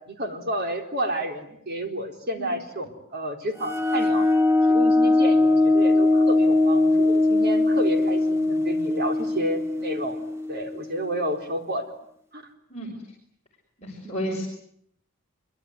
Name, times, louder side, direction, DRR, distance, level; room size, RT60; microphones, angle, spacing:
voice 1, 0.1-4.3 4.7-11.9 12.3-12.4 14.0-14.3, right 1 dB, 45° right, 4 dB, 4.2 m, -31 dB
sound 1, 3.6-11.1, left 2 dB, 15° right, 2.2 m, -21 dB
voice 2, 12.7-13.0 13.8-14.4, equal, 30° left, -3 dB, 6.2 m, -32 dB
26.0 x 24.0 x 9.6 m, 0.71 s
head